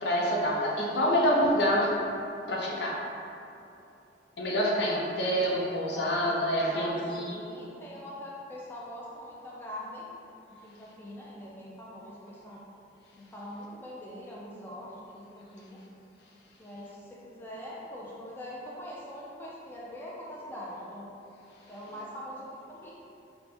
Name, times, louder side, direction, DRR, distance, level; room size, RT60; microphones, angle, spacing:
voice 1, 0.0-2.0 2.5-3.0 4.4-7.4, equal, 70° left, -3 dB, 0.6 m, -27 dB
voice 2, 5.9-10.1 10.5-12.7 13.2-15.8 16.6-21.1 21.7-22.9, left 1 dB, 10° left, -6 dB, 0.4 m, -43 dB
4.1 x 2.1 x 3.3 m, 2.8 s
head